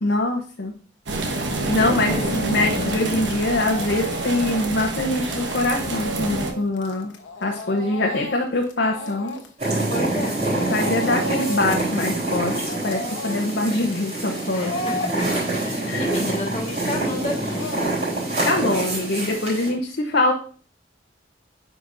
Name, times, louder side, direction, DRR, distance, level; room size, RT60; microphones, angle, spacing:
voice 1, 0.0-0.7 1.7-7.1 7.4-9.3 10.5-12.5 12.8-14.7 15.9-16.3 18.4-20.3, left 2 dB, 65° left, 0 dB, 0.8 m, -23 dB
sound 1, 1.1-6.5, right 2 dB, 75° right, 1.1 m, -27 dB
voice 2, 1.8-2.2 9.9-10.4 14.5-17.7, left 1 dB, 35° left, 0 dB, 1.7 m, -31 dB
Speech / Crying sobbing, 2.2-3.3 3.6-10.2 10.5-11.9 12.2-18.4, left 2 dB, 90° left, 1.0 m, -34 dB
sound 2, 9.6-19.7, right 2 dB, 40° right, 3.7 m, -26 dB
8.9 x 5.1 x 2.6 m, 0.42 s
head